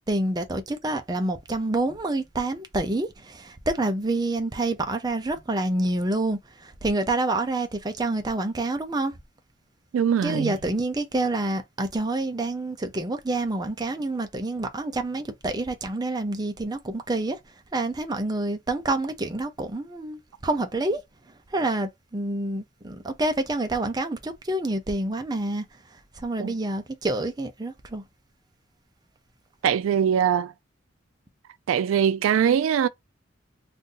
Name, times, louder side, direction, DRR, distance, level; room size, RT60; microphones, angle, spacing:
voice 1, 0.1-9.1 10.2-17.4 17.7-21.0 21.5-25.6 26.2-28.0, right 2 dB, 20° right, 0.5 m, -27 dB
voice 2, 9.9-10.6 26.4-26.5 29.6-30.5 31.7-32.9, right 8 dB, 85° right, 0.3 m, -22 dB
2.6 x 2.6 x 3.7 m
head